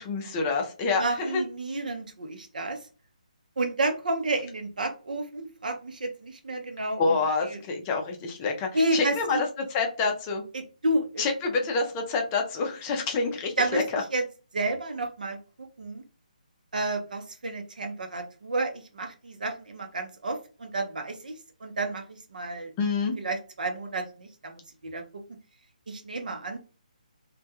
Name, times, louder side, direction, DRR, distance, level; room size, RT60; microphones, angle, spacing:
voice 1, 0.0-1.4 7.0-10.4 11.2-14.0 22.8-23.2, left 4 dB, 20° left, 2 dB, 0.4 m, -27 dB
voice 2, 0.9-2.8 3.6-7.2 7.4-7.6 8.7-9.4 10.5-11.2 13.6-14.2 14.5-16.0 16.7-21.3 21.6-22.7 23.2-24.6 24.9-25.2 25.9-26.6, right 2 dB, 70° right, 6 dB, 0.6 m, -31 dB
2.2 x 2.2 x 2.8 m, 0.34 s
hypercardioid pair, 155°, 5 cm